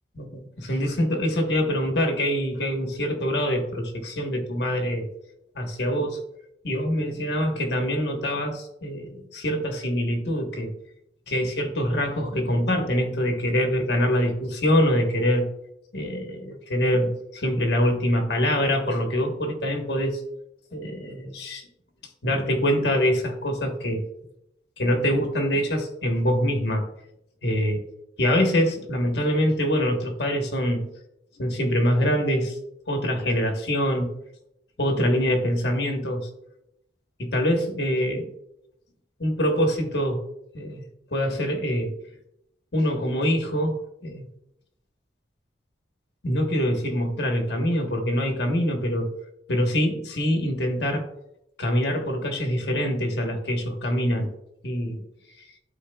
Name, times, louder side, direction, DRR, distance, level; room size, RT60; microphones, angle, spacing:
voice 1, 0.1-5.1 5.5-6.2 6.6-10.7 11.3-15.5 15.9-20.2 20.7-21.7 22.2-24.0 24.8-26.8 27.4-27.8 28.2-30.9 31.4-32.6 32.9-34.1 34.8-36.3 37.2-38.3 39.2-40.2 40.5-40.8 41.1-41.9 42.7-44.3 46.2-49.1 49.5-51.1 51.6-54.3 54.6-55.0, equal, 65° left, 3 dB, 1.2 m, -24 dB
12.0 x 4.5 x 2.3 m, 0.80 s
head